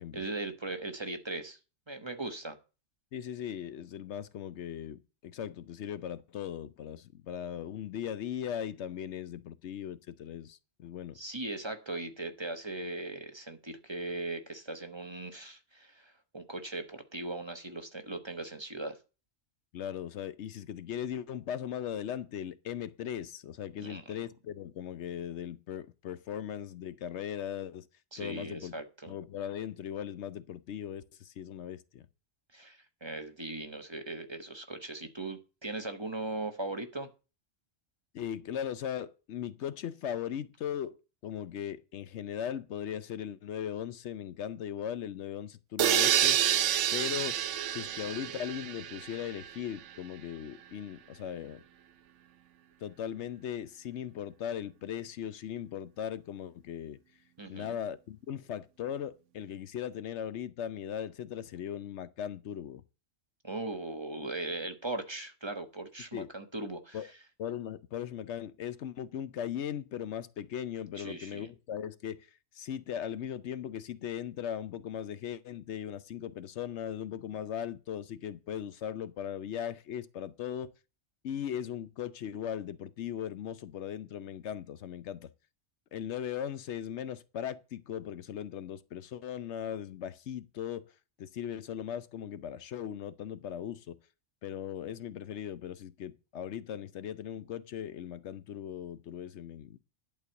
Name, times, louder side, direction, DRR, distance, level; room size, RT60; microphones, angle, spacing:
voice 1, 0.1-1.6 1.9-2.6 11.1-19.0 23.8-24.0 28.1-29.1 32.5-37.1 57.4-57.8 63.4-67.0 71.0-71.5, right 2 dB, 25° right, 1.2 m, -39 dB
voice 2, 3.1-11.2 19.7-27.9 28.2-28.7 29.1-32.1 38.1-46.6 46.9-47.4 47.7-51.6 52.8-57.0 57.5-62.8 66.1-66.3 66.9-67.1 67.4-80.7 81.2-85.3 85.9-90.9 91.2-94.0 94.4-99.8, left 9 dB, 75° left, 0.9 m, -38 dB
sound 1, 45.8-49.5, right 10 dB, 90° right, 1.0 m, -28 dB
11.0 x 4.6 x 7.9 m
omnidirectional pair, 1.2 m